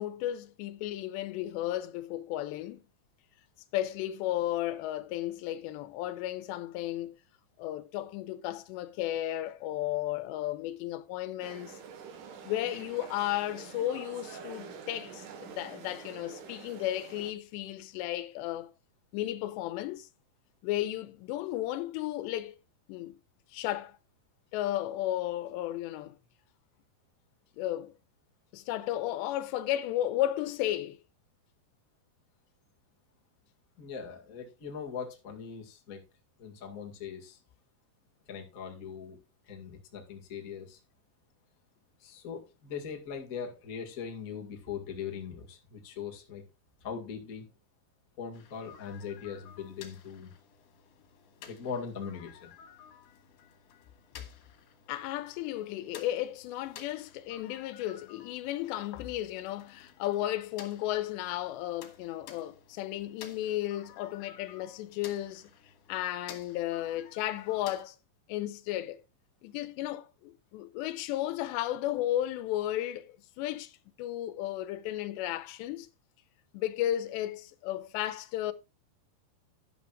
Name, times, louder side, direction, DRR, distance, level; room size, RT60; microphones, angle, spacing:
voice 1, 0.0-2.8 3.7-7.1 7.6-11.8 12.4-18.7 19.1-20.1 20.6-22.6 22.9-23.2 23.5-24.0 24.5-26.2 27.6-27.9 28.5-31.0 54.9-65.5 65.9-68.0 68.3-69.0 69.4-73.7 74.0-75.9 76.5-78.5, left 13 dB, 90° left, 2.9 m, -34 dB
sound 1, 11.4-17.3, right 6 dB, 60° right, 2.5 m, -47 dB
voice 2, 33.8-36.0 36.4-37.4 38.3-39.2 39.4-40.8 42.0-46.4 46.8-47.5 48.2-50.3 51.5-52.5, left 6 dB, 45° left, 1.0 m, -40 dB
sound 2, 48.3-67.8, left 8 dB, 70° left, 3.3 m, -53 dB
11.5 x 11.0 x 2.4 m
omnidirectional pair, 5.0 m